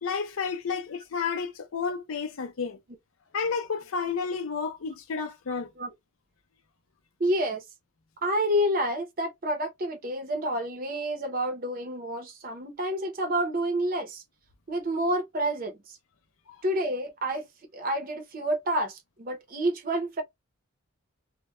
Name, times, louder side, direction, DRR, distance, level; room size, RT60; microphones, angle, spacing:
voice 1, 0.0-2.8 3.3-5.7 16.5-16.6, left 5 dB, 85° left, 0.6 m, -31 dB
voice 2, 7.2-7.6 8.2-14.2 14.7-16.0 16.6-17.5 17.7-20.2, right 1 dB, 45° right, 0.6 m, -29 dB
2.2 x 2.1 x 2.9 m
head